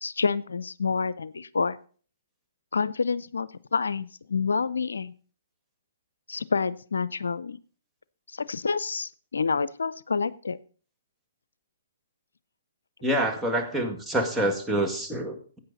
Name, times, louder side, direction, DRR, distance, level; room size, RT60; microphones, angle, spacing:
voice 1, 0.0-1.8 2.7-5.1 6.3-7.6 8.3-10.6, left 5 dB, 80° left, 18 dB, 0.5 m, -28 dB
voice 2, 13.0-15.6, right 1 dB, 5° right, 2 dB, 2.0 m, -27 dB
15.0 x 8.9 x 4.0 m, 0.42 s
hypercardioid pair, 130°, 0 cm